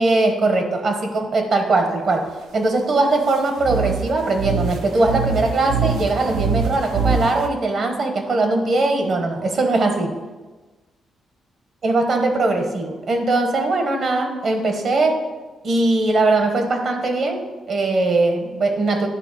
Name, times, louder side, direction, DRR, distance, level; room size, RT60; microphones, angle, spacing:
voice 1, 0.0-2.3 2.5-10.1 11.8-15.2 15.6-19.1, right 2 dB, 50° right, 4 dB, 1.2 m, -20 dB
sound 1, 3.6-7.5, right 5 dB, 85° right, 0.7 m, -24 dB
9.9 x 3.4 x 6.4 m, 1.2 s
cardioid pair, 125°, 0 cm